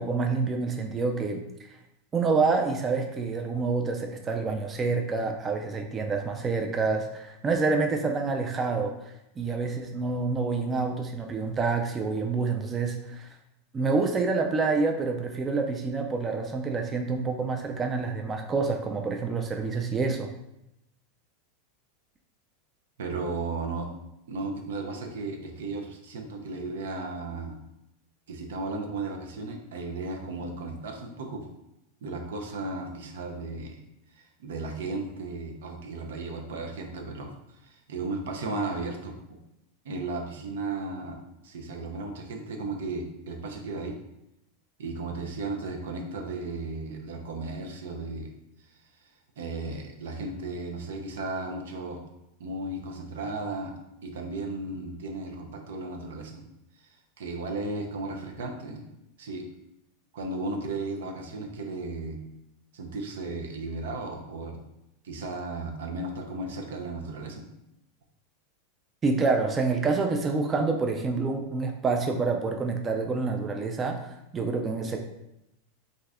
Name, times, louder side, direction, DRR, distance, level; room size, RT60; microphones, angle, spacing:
voice 1, 0.0-1.4 2.1-13.3 13.7-20.3 69.0-75.0, right 4 dB, 25° right, 3 dB, 0.3 m, -27 dB
voice 2, 23.0-23.9 24.3-27.6 28.3-31.4 32.0-33.8 34.1-39.4 39.8-41.2 41.4-44.0 44.8-48.3 48.7-49.1 49.4-52.0 52.4-53.7 54.0-56.4 56.8-58.8 59.2-59.4 60.1-62.2 62.7-64.6 65.0-67.5, right 3 dB, 80° right, 3 dB, 0.5 m, -35 dB
2.6 x 2.3 x 3.3 m, 0.85 s
hypercardioid pair, 115°, 0 cm